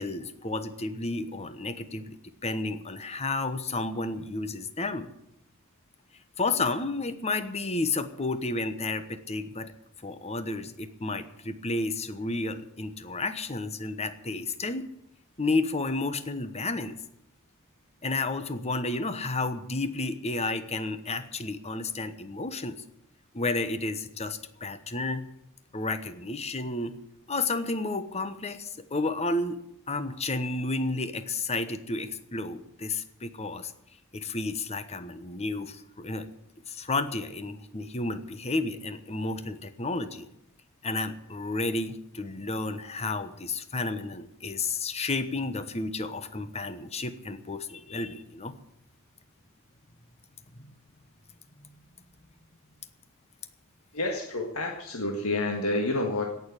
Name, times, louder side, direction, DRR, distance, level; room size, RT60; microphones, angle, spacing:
voice 1, 0.0-5.1 6.4-9.7 10.0-14.9 15.4-17.0 18.0-22.8 23.3-25.2 25.7-26.9 27.3-29.6 29.9-33.7 34.1-36.3 36.7-40.3 40.8-48.5 50.5-50.7, left 3 dB, 30° left, 11 dB, 1.1 m, -31 dB
voice 2, 53.9-56.3, left 2 dB, 85° left, 1 dB, 1.8 m, -29 dB
17.5 x 7.0 x 9.8 m, 0.80 s
head